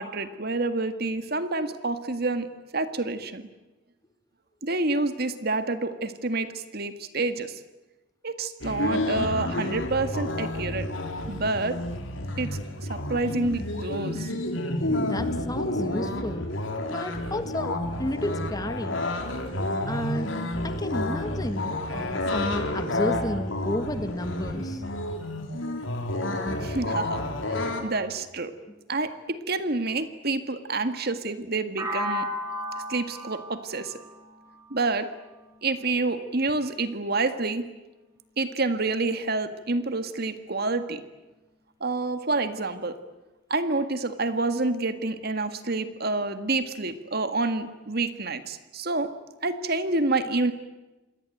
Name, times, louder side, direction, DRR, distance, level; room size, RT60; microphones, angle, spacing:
voice 1, 0.0-3.4 4.6-7.5 8.2-10.9 11.3-11.8 12.4-14.3 26.6-27.3 27.5-28.5 28.9-32.3 32.9-34.0 34.7-35.1 35.6-37.7 38.4-41.0 41.8-43.0 43.5-49.1 49.4-50.5, right 3 dB, 55° right, 10 dB, 1.9 m, -28 dB
sound 1, 8.6-27.8, left 1 dB, 85° left, 4.0 m, -30 dB
voice 2, 15.0-16.5 16.9-19.0 19.9-20.3 20.6-24.8 26.5-26.6, left 1 dB, 20° left, 10 dB, 1.6 m, -32 dB
sound 2, 31.8-35.7, equal, 15° right, 6.4 m, -34 dB
28.0 x 21.0 x 9.1 m, 1.1 s
head